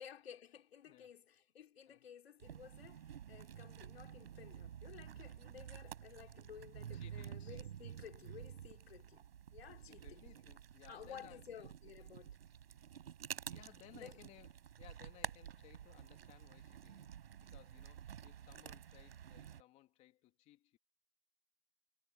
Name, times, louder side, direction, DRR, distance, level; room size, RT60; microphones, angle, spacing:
voice 1, 0.0-10.2 10.9-12.4 14.0-14.2, left 8 dB, 70° left, 3.7 m, -55 dB
sound 1, 2.4-19.6, right 9 dB, 65° right, 7.0 m, -51 dB
voice 2, 6.9-7.4 9.7-11.4 13.5-20.8, left 15 dB, 20° left, 3.3 m, -62 dB
hypercardioid pair, 160°, 32 cm